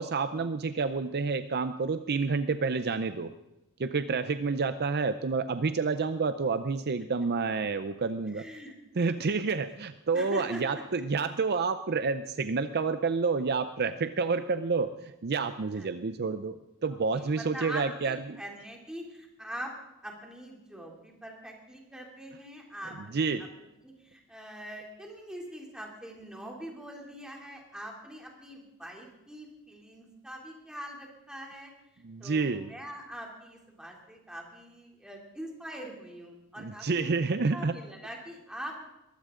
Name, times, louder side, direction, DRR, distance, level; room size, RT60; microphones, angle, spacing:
voice 1, 0.0-3.3 3.8-8.5 9.0-18.4 23.0-23.4 32.0-32.7 36.6-37.8, right 4 dB, 50° right, 11 dB, 0.6 m, -29 dB
voice 2, 8.2-8.7 10.1-10.6 15.7-15.9 16.9-19.7 20.0-23.3 23.8-31.7 32.2-37.2 37.5-38.8, equal, 5° right, -1 dB, 3.0 m, -43 dB
21.5 x 15.5 x 3.8 m, 0.92 s
head